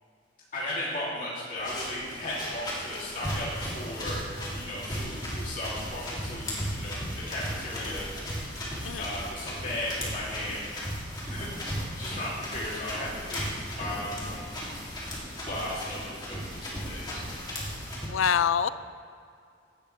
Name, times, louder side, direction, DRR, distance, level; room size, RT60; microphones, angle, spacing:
voice 1, 0.5-8.1 8.8-10.7 11.3-14.6 15.4-17.2, left 1 dB, 45° left, -7 dB, 3.1 m, -36 dB
sound 1, 1.6-18.1, equal, 20° left, 2.9 m, -36 dB
voice 2, 18.1-18.7, left 7 dB, 85° left, 14 dB, 0.5 m, -25 dB
17.5 x 11.5 x 3.4 m, 2.4 s
head